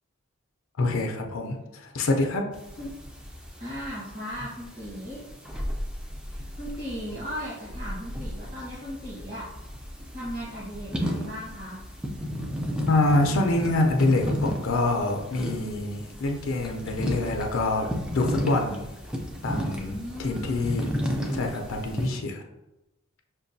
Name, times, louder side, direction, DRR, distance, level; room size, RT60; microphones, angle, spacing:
voice 1, 0.8-2.4 12.9-17.9 18.1-18.8 19.4-20.9 21.3-22.4, left 2 dB, 70° left, 3 dB, 0.5 m, -26 dB
sound 1, 2.5-22.1, equal, 5° right, 0.3 m, -34 dB
voice 2, 3.6-5.2 6.3-9.5 10.1-11.8 19.8-20.8, equal, 40° right, -11 dB, 1.3 m, -37 dB
5.9 x 2.2 x 2.6 m, 0.95 s
head